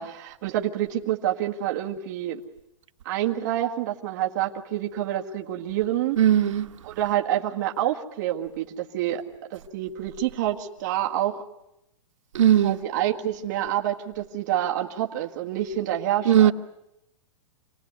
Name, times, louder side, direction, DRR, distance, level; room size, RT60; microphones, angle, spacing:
voice 1, 0.0-2.4 3.1-6.2 6.8-9.2 9.5-11.4 12.6-16.5, right 12 dB, 35° right, 1.9 m, -27 dB
voice 2, 6.2-6.7 12.3-12.8 16.2-16.5, right 10 dB, 70° right, 1.3 m, -18 dB
27.5 x 18.5 x 9.7 m
hypercardioid pair, 175°, 17 cm